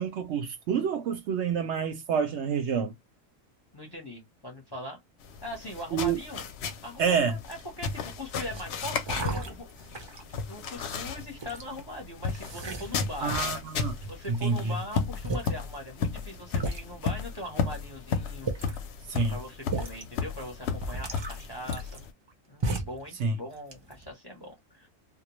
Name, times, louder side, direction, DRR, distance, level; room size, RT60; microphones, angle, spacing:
voice 1, 0.0-2.9 5.9-6.2 7.0-7.4 13.2-13.9 14.3-14.8 19.1-19.4 23.2-23.4, right 6 dB, 65° right, 0.8 m, -28 dB
voice 2, 3.7-5.0 5.4-6.4 6.8-9.7 10.5-13.6 14.1-18.8 19.3-22.0 22.5-24.9, left 1 dB, 25° left, 0.6 m, -41 dB
sound 1, 5.2-22.1, left 5 dB, 65° left, 0.7 m, -34 dB
sound 2, 7.6-8.0 8.5-8.6 9.0-10.3 10.9-11.7 12.3-13.6 14.0-14.5 15.0-15.1 15.2-15.6 16.2-16.3 16.6-16.8 17.7-17.8 18.3-18.9 19.7-20.0 20.4-20.5 20.8-22.3 22.6-23.0 23.5-24.1, right 2 dB, 45° right, 0.3 m, -35 dB
2.3 x 2.1 x 2.9 m
omnidirectional pair, 1.4 m